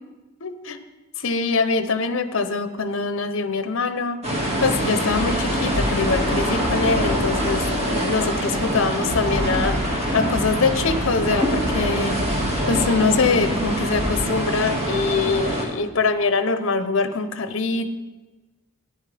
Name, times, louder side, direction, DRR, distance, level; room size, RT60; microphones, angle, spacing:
voice 1, 0.4-0.8 1.2-4.2 4.6-12.1 12.7-18.0, left 4 dB, 60° left, 10 dB, 0.7 m, -23 dB
sound 1, 4.2-15.6, equal, 30° right, 1.9 m, -24 dB
13.0 x 9.9 x 3.4 m, 1.2 s
head